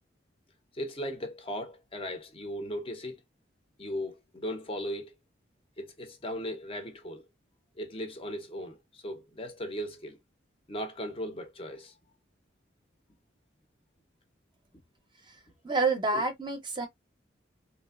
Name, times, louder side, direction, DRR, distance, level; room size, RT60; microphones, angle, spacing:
voice 1, 0.7-3.2 3.8-5.1 5.8-7.2 7.8-10.2 10.7-11.9 16.1-16.2, equal, 30° left, 0.5 m, -37 dB
voice 2, 15.6-16.9, right 3 dB, 25° right, 0.5 m, -28 dB
3.1 x 2.4 x 2.3 m
head